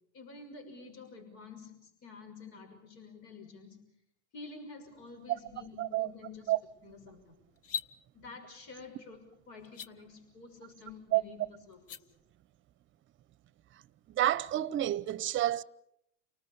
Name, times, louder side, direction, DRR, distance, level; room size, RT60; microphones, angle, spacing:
voice 1, 0.1-3.8 4.3-6.5 6.8-7.3 8.1-12.0, left 4 dB, 60° left, 6.1 m, -49 dB
voice 2, 5.8-6.1 6.5-6.6 11.1-11.2 14.1-15.6, right 14 dB, 35° right, 0.9 m, -29 dB
sound 1, 7.6-7.9 9.6-9.9 11.7-12.0, left 7 dB, 40° left, 0.9 m, -37 dB
29.5 x 19.5 x 6.9 m
hypercardioid pair, 95°, 35 cm